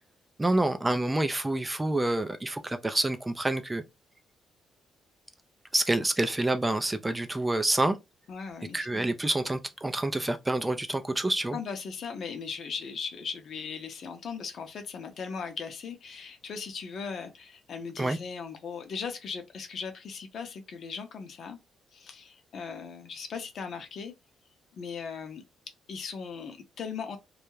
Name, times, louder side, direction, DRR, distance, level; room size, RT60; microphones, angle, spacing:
voice 1, 0.4-3.8 5.7-8.0 8.7-11.6 18.0-18.2, right 2 dB, 15° right, 0.3 m, -27 dB
voice 2, 8.3-9.1 11.5-21.6 21.9-24.1 24.7-25.4 25.9-27.2, left 5 dB, 60° left, 0.6 m, -38 dB
2.3 x 2.0 x 3.0 m
cardioid pair, 90°, 0 cm